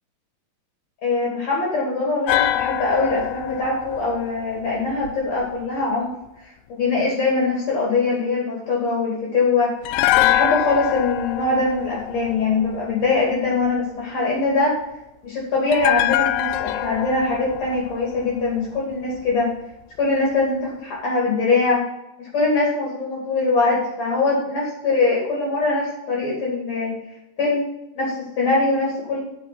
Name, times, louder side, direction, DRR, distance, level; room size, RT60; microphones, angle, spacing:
voice 1, 1.0-6.1 6.7-9.7 10.1-14.8 15.2-19.5 20.0-21.8 22.2-26.9 27.4-27.6 28.0-29.2, left 3 dB, 50° left, -4 dB, 3.6 m, -22 dB
sound 1, 2.3-5.4 9.8-13.1 15.7-18.9 19.2-19.3, left 14 dB, 90° left, 2.3 m, -24 dB
12.0 x 5.1 x 6.1 m, 0.89 s
omnidirectional pair, 4.0 m